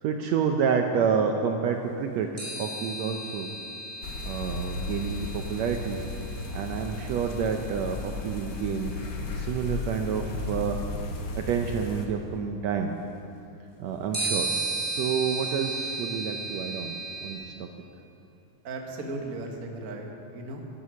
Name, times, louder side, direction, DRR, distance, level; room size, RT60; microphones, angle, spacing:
voice 1, 0.0-3.5 4.2-6.0 6.5-9.0 9.3-10.8 11.3-12.9 13.8-14.5 14.9-16.9 17.2-17.7, right 6 dB, 75° right, 4 dB, 1.7 m, -29 dB
sound 1, 2.4-8.0 9.3-9.4 14.1-17.3, right 3 dB, 20° right, 4.4 m, -35 dB
sound 2, 4.0-12.1, left 3 dB, 75° left, 1.0 m, -35 dB
voice 2, 18.6-20.6, right 2 dB, 45° right, 1 dB, 1.2 m, -36 dB
12.5 x 12.5 x 6.3 m, 2.7 s
omnidirectional pair, 3.5 m